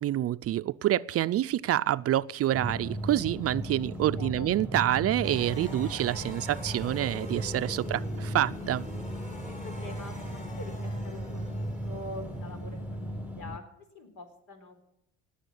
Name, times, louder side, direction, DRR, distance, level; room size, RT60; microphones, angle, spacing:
voice 1, 0.0-8.8, right 13 dB, 45° right, 0.5 m, -27 dB
sound 1, 2.5-13.6, equal, 5° right, 1.1 m, -36 dB
voice 2, 4.2-4.5 7.8-8.0 9.5-14.8, left 2 dB, 65° left, 4.1 m, -45 dB
sound 2, 5.2-13.4, left 1 dB, 20° left, 3.9 m, -46 dB
19.0 x 7.2 x 8.6 m
supercardioid pair, 85°, 33 cm